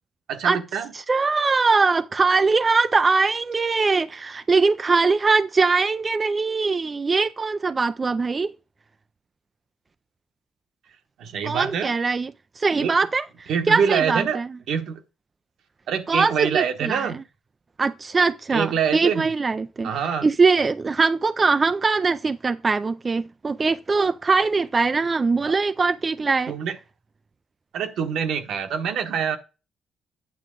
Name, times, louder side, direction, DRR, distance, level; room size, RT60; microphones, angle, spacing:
voice 1, 0.3-0.9 11.2-11.9 12.8-13.0 13.5-14.4 14.7-15.0 15.9-17.2 18.5-19.3 19.8-20.3 25.4-25.5 26.5-26.8 27.7-29.4, right 7 dB, 75° right, 1.2 m, -25 dB
voice 2, 0.9-8.5 11.4-13.3 13.7-14.5 16.1-17.1 17.8-19.9 20.2-26.5, right 4 dB, 30° right, 0.3 m, -21 dB
9.0 x 5.8 x 3.7 m
cardioid pair, 90°, 0 cm